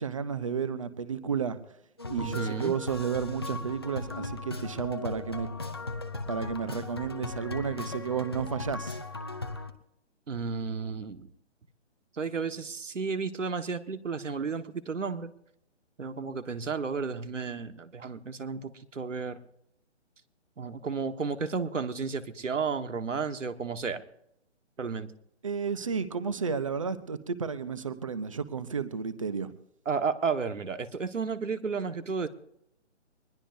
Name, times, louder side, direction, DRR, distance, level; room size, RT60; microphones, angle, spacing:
voice 1, 0.0-1.6 2.1-5.5 6.3-9.0 25.4-29.5, right 6 dB, 25° right, 14 dB, 0.7 m, -32 dB
sound 1, 2.0-9.7, left 3 dB, 20° left, 0.6 m, -37 dB
voice 2, 2.2-2.7 10.3-11.3 12.2-15.3 16.0-19.4 20.6-24.0 24.8-25.1 29.8-32.3, right 5 dB, 90° right, 10 dB, 1.7 m, -32 dB
23.0 x 20.5 x 2.7 m, 0.77 s
hypercardioid pair, 170°, 36 cm